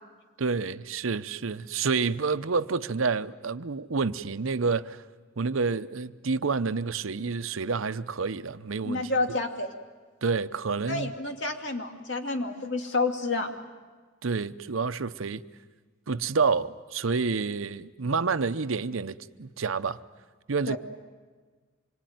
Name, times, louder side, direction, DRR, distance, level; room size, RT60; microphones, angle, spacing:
voice 1, 0.4-5.0 5.4-9.1 10.2-11.1 14.2-15.4 16.1-20.0 20.5-20.8, right 4 dB, 90° right, 0.8 m, -28 dB
voice 2, 8.8-9.7 10.9-13.5 20.7-20.8, left 3 dB, 65° left, 2.5 m, -29 dB
26.0 x 23.0 x 9.3 m
head